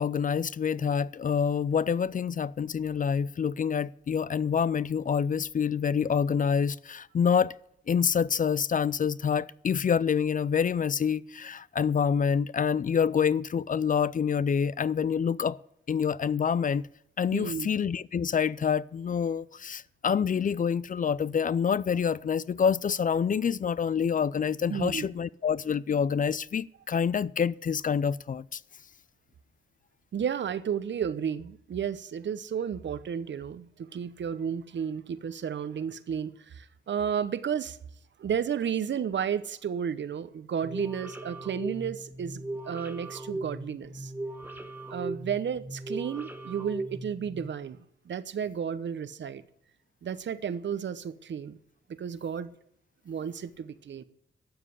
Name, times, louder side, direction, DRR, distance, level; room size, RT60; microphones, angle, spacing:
voice 1, 0.0-7.5 7.9-15.6 15.9-16.8 17.2-28.6, left 7 dB, 45° left, 0.4 m, -27 dB
voice 2, 17.3-17.7 24.7-25.1 30.1-37.8 38.2-44.1 44.9-49.4 50.0-51.6 51.9-52.5 53.0-54.0, right 8 dB, 70° right, 0.9 m, -32 dB
sound 1, 40.6-47.5, right 2 dB, 10° right, 1.5 m, -38 dB
12.5 x 7.5 x 8.2 m
cardioid pair, 90°, 20 cm